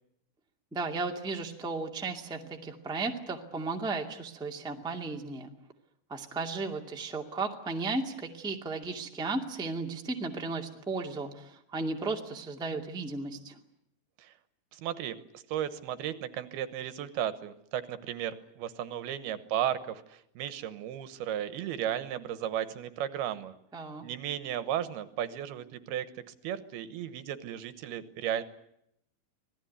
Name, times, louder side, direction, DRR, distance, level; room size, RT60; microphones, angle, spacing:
voice 1, 0.7-5.5 6.1-13.6 23.7-24.0, right 3 dB, ahead, 2 dB, 1.1 m, -35 dB
voice 2, 14.7-15.2 15.5-23.5 24.0-26.1 26.4-28.4, right 10 dB, 80° right, 12 dB, 3.1 m, -34 dB
26.0 x 18.0 x 9.6 m, 0.77 s
omnidirectional pair, 4.5 m